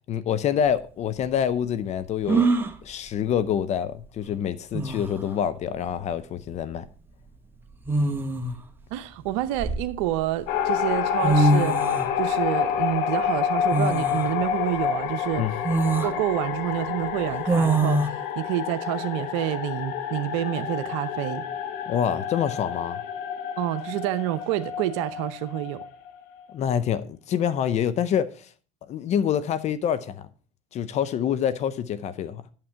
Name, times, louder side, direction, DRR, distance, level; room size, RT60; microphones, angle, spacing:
voice 1, 0.1-2.5 2.8-6.9 15.4-15.6 21.9-23.0 26.5-28.5 28.9-30.3 30.7-32.4, left 9 dB, 45° left, 0.6 m, -26 dB
sound 1, 0.7-0.8 2.3-2.8 4.3-4.4 4.7-5.2 6.5-6.8 7.8-8.6 9.3-10.3 11.0-11.1 11.2-12.1 13.7-14.3 14.8-14.9 15.6-16.1 17.5-18.1, right 2 dB, 15° right, 1.1 m, -23 dB
voice 2, 8.9-15.5 16.0-21.4 23.6-25.8, right 13 dB, 75° right, 0.7 m, -28 dB
sound 2, 10.5-26.4, left 8 dB, 65° left, 1.1 m, -29 dB
8.7 x 7.1 x 5.6 m
hypercardioid pair, 85°, 16 cm